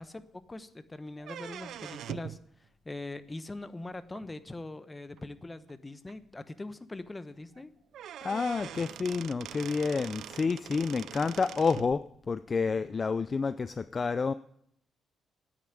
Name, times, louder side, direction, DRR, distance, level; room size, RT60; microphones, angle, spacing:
voice 1, 0.0-7.7, left 2 dB, 20° left, 13 dB, 1.0 m, -42 dB
sound 1, 1.2-2.4 4.1-4.2 5.2-5.3 5.7-5.8 6.1-6.2 7.6-7.7 7.9-11.9, right 10 dB, 75° right, 0.5 m, -43 dB
voice 2, 8.2-14.3, left 4 dB, 35° left, 14 dB, 0.4 m, -29 dB
9.6 x 8.7 x 9.9 m, 0.72 s
cardioid pair, 90°, 0 cm